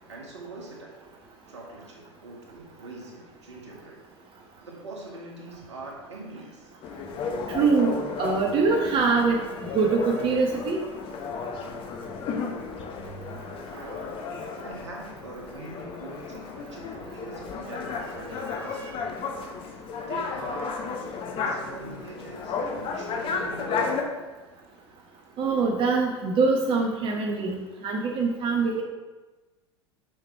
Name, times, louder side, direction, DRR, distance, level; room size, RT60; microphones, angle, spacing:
voice 1, 0.1-1.0 1.5-4.0 4.6-6.7 13.7-14.2 14.6-19.0 19.6-24.1, right 2 dB, 75° right, -1 dB, 1.9 m, -42 dB
sound 1, 6.8-24.0, left 5 dB, 35° left, 1.0 m, -33 dB
voice 2, 7.5-9.4 9.7-10.8 18.5-18.8 25.4-28.8, right 4 dB, 35° right, 0 dB, 1.1 m, -24 dB
6.4 x 6.0 x 4.5 m, 1.2 s
figure-of-eight pair, 80°, 15 cm